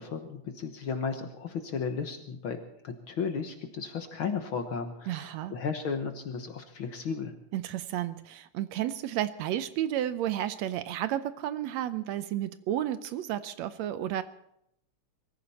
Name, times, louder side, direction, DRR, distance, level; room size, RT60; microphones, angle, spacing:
voice 1, 0.0-7.3, left 5 dB, 55° left, 7 dB, 1.6 m, -34 dB
voice 2, 5.1-5.5 7.5-14.2, right 12 dB, 75° right, 13 dB, 1.8 m, -32 dB
23.0 x 14.5 x 4.2 m, 0.76 s
omnidirectional pair, 3.3 m